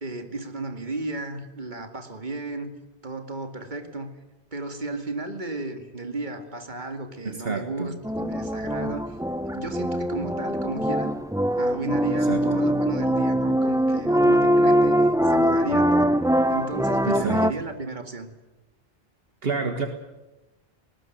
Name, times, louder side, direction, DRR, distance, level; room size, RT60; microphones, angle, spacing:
voice 1, 0.0-2.7 3.0-4.1 4.5-9.2 9.5-11.1 11.6-16.1 16.5-18.3, right 2 dB, 50° right, 6 dB, 2.5 m, -34 dB
voice 2, 7.3-7.9 12.3-12.6 17.0-17.4 19.4-19.9, right 4 dB, 70° right, 6 dB, 1.9 m, -28 dB
sound 1, 8.0-17.5, equal, 5° right, 0.6 m, -22 dB
20.0 x 19.5 x 9.4 m, 1.1 s
omnidirectional pair, 1.0 m